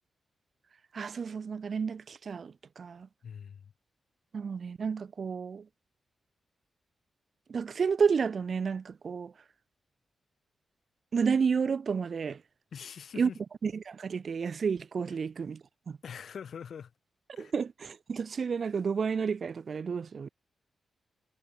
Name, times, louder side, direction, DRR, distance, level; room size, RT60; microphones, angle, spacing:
voice 1, 0.9-3.1 4.3-5.7 7.5-9.3 11.1-12.4 13.2-13.3 13.6-16.0 17.4-20.3, right 6 dB, 55° right, 2.3 m, -31 dB
voice 2, 3.2-3.7 12.7-13.4 15.1-15.2 16.0-16.9 17.4-17.5, left 7 dB, 70° left, 6.2 m, -43 dB
cardioid pair, 95°, 0 cm